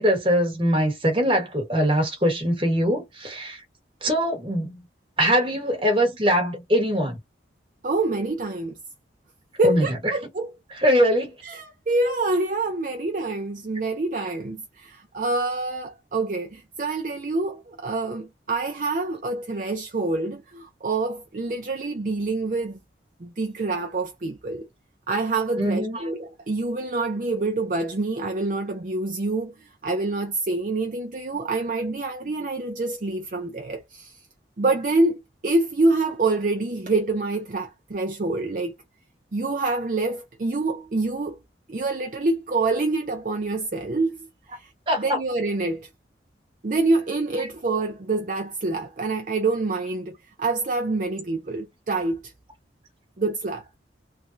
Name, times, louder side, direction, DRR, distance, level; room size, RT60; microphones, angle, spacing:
voice 1, 0.0-3.6 4.0-4.8 5.2-7.2 9.6-9.9 10.8-11.3 25.6-26.0 44.9-45.2, equal, 30° right, 1.4 m, -22 dB
voice 2, 7.8-8.7 9.6-10.5 11.4-22.8 23.2-24.7 25.1-34.2 34.6-38.7 39.3-41.4 41.7-44.3 44.5-44.7 45.0-45.9 46.6-52.3 53.2-53.7, right 2 dB, 45° right, 0.5 m, -26 dB
3.3 x 2.3 x 2.6 m
head